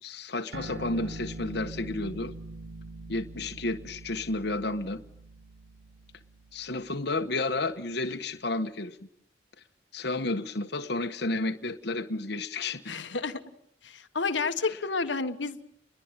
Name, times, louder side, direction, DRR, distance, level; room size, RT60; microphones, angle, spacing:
voice 1, 0.0-2.3 3.1-5.0 6.5-9.0 9.9-13.0 14.7-14.8, left 2 dB, 65° left, 1.5 m, -31 dB
sound 1, 0.5-7.4, right 2 dB, 65° right, 1.5 m, -43 dB
voice 2, 12.9-13.4 13.8-15.6, left 4 dB, 80° left, 1.5 m, -30 dB
29.0 x 22.0 x 9.1 m
head